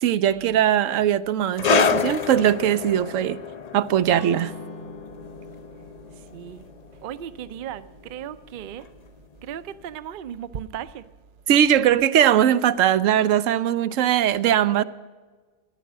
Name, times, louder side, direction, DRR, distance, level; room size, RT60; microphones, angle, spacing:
voice 1, 0.0-3.4 3.7-4.5 11.5-14.8, right 10 dB, 85° right, 1.0 m, -20 dB
sound 1, 1.6-8.6 8.8-9.1 9.8-9.9, left 6 dB, 45° left, 0.5 m, -28 dB
Acoustic guitar / Strum, 4.0-8.2, left 2 dB, 75° left, 2.2 m, -43 dB
voice 2, 6.2-6.7 7.0-8.9 9.4-11.0, right 9 dB, 55° right, 0.6 m, -36 dB
13.5 x 10.0 x 7.4 m
omnidirectional pair, 1.3 m